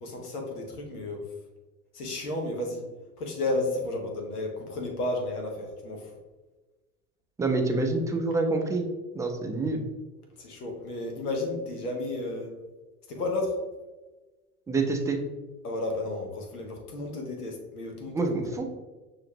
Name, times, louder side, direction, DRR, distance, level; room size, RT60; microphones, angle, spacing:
voice 1, 0.0-1.3 1.9-2.9 3.2-6.1 10.4-12.5 13.1-13.6 15.6-18.6, left 2 dB, 90° left, 2 dB, 1.0 m, -32 dB
voice 2, 7.4-8.9 9.1-9.8 14.7-15.2 18.1-18.6, right 3 dB, 5° right, 3 dB, 0.4 m, -27 dB
5.9 x 2.5 x 2.9 m, 1.2 s
hypercardioid pair, 80°, 45 cm